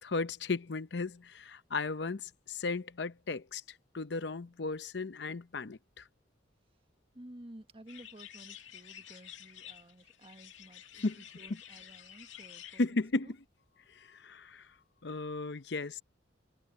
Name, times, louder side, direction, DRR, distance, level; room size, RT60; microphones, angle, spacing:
voice 1, 0.0-3.6 3.9-6.0 11.0-11.2 12.8-13.3 14.0-14.7 15.0-16.0, left 3 dB, 65° left, 0.7 m, -35 dB
voice 2, 7.1-13.3, right 1 dB, 30° right, 1.4 m, -53 dB
sound 1, 7.9-12.8, left 10 dB, 85° left, 2.1 m, -51 dB
head